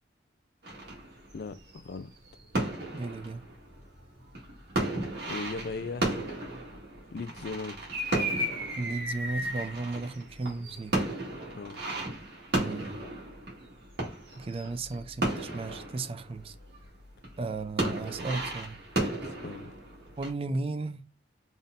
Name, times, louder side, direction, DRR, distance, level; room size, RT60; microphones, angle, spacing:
sound 1, 0.6-16.9 17.2-20.3, right 1 dB, 65° right, 1.8 m, -34 dB
voice 1, 1.3-2.1 5.3-6.2 7.1-7.8 11.5-11.8 19.2-19.7, left 4 dB, 60° left, 0.4 m, -38 dB
voice 2, 2.9-3.4 8.8-11.0 12.5-13.0 14.4-16.6 17.4-18.8 20.2-21.1, right 3 dB, 35° right, 0.4 m, -35 dB
4.0 x 3.6 x 2.5 m
head